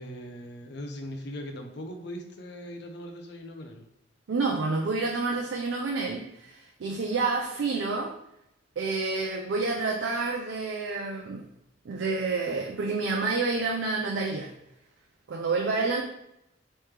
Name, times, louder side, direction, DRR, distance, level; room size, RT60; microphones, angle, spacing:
voice 1, 0.0-3.9, equal, 65° left, 4 dB, 0.5 m, -40 dB
voice 2, 4.3-8.1 8.8-11.5 11.9-14.5 15.3-16.0, right 3 dB, 85° right, 1 dB, 0.4 m, -29 dB
3.3 x 3.1 x 3.2 m, 0.82 s
head